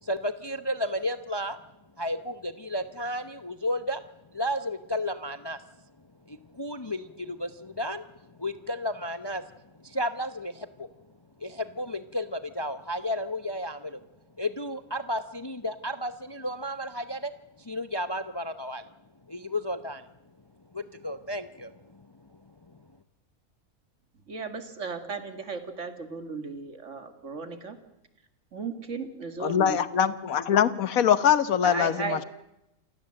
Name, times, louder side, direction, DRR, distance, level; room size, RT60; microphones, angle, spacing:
voice 1, 0.0-1.6 2.0-4.0 4.3-5.6 6.3-8.1 8.4-9.4 9.8-10.9 11.4-14.0 14.4-17.3 17.6-18.9 19.3-20.1 20.7-22.0, left 1 dB, 25° left, 10 dB, 0.7 m, -33 dB
voice 2, 24.3-27.8 28.5-30.1 31.6-32.2, right 4 dB, 55° right, 8 dB, 2.3 m, -35 dB
voice 3, 29.4-32.2, left 8 dB, 75° left, 14 dB, 1.4 m, -23 dB
27.5 x 17.5 x 7.7 m, 0.88 s
omnidirectional pair, 1.5 m